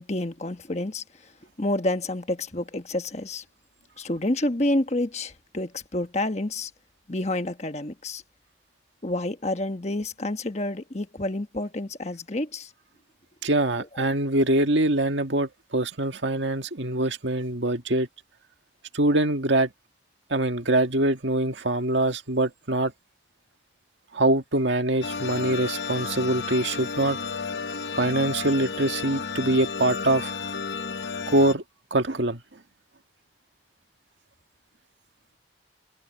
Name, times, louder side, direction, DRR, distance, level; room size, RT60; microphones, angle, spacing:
voice 1, 0.0-1.3 1.6-3.4 4.0-6.7 7.1-8.2 9.0-12.7, left 1 dB, 35° left, 1.3 m, -29 dB
voice 2, 13.4-18.1 18.9-19.7 20.3-22.9 24.1-27.2 28.0-30.3 31.3-31.6 31.9-32.4, right 1 dB, 80° right, 1.8 m, -24 dB
sound 1, 25.0-31.5, left 5 dB, 70° left, 0.9 m, -32 dB
head